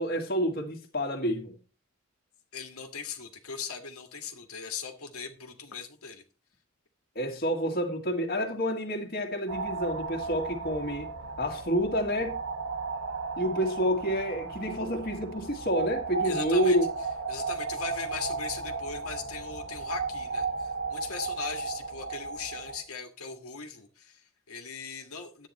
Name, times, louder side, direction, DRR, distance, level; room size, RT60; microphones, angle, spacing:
voice 1, 0.0-1.5 7.2-11.1 11.4-12.4 13.4-16.9, equal, 45° left, 1.8 m, -28 dB
voice 2, 2.5-6.2 16.2-16.8 17.3-25.5, left 5 dB, 85° left, 1.8 m, -39 dB
sound 1, 9.5-22.8, right 4 dB, 75° right, 1.4 m, -35 dB
11.0 x 9.0 x 4.2 m
head